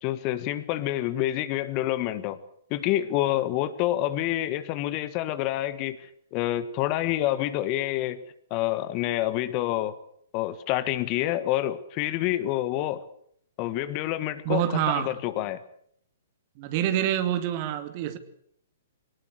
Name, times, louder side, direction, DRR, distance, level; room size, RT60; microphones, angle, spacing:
voice 1, 0.0-2.4 2.7-8.2 8.5-10.0 10.3-13.0 13.6-15.6, left 14 dB, 35° left, 13 dB, 1.6 m, -28 dB
voice 2, 14.4-15.1 16.6-18.2, right 11 dB, 40° right, 10 dB, 2.4 m, -26 dB
23.0 x 19.0 x 8.0 m, 0.67 s
figure-of-eight pair, 115°, 0 cm